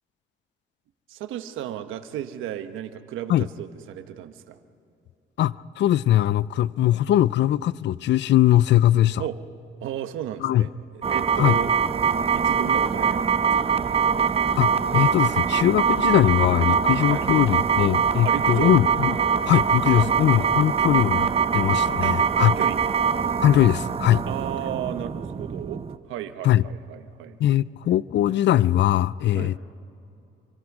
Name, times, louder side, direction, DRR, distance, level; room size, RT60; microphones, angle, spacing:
voice 1, 1.1-4.6 9.2-9.4 9.8-11.7 12.3-13.7 17.1-17.2 18.2-18.7 20.0-20.1 22.0-22.8 24.3-25.8 26.1-27.4 29.3-29.6, right 11 dB, 90° right, 1.1 m, -34 dB
voice 2, 5.4-9.2 10.4-10.7 11.4-11.6 14.6-19.1 19.5-22.5 23.4-24.2 26.4-26.6 27.4-29.6, left 12 dB, 65° left, 0.5 m, -21 dB
sound 1, 11.0-26.0, right 6 dB, 30° right, 0.8 m, -23 dB
29.5 x 24.5 x 4.9 m
cardioid pair, 90°, 20 cm